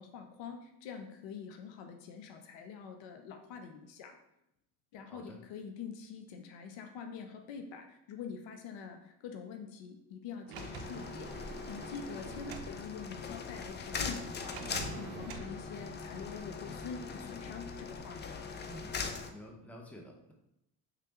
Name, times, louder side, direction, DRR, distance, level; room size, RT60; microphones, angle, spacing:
voice 1, 0.0-4.2 4.9-11.3 11.7-14.6 15.0-18.2, left 6 dB, 65° left, 5 dB, 0.6 m, -45 dB
voice 2, 5.1-5.4 12.3-12.6 18.6-19.0 19.3-20.3, equal, 5° left, 0 dB, 0.8 m, -50 dB
Sliding door, 10.5-12.8 14.5-15.5, right 6 dB, 50° right, 0.5 m, -46 dB
sound 1, 10.6-19.3, left 5 dB, 25° left, 0.4 m, -41 dB
3.7 x 3.3 x 2.9 m, 0.82 s
hypercardioid pair, 55°, 49 cm